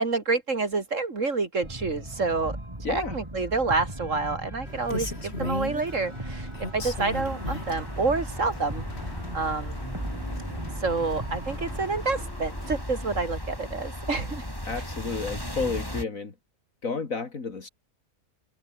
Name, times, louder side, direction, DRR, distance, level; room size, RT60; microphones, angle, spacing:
voice 1, 0.0-2.5 2.9-9.7 10.7-14.5 14.8-14.9, right 3 dB, 60° right, 3.0 m, -28 dB
sound 1, 1.6-12.3, right 1 dB, 20° right, 3.9 m, -38 dB
voice 2, 2.8-3.2 14.7-16.3 16.8-17.7, left 4 dB, 65° left, 2.9 m, -31 dB
Rain, 4.7-12.8, left 2 dB, 45° left, 4.1 m, -39 dB
sound 2, 6.8-16.0, equal, 15° left, 7.1 m, -36 dB
omnidirectional pair, 1.5 m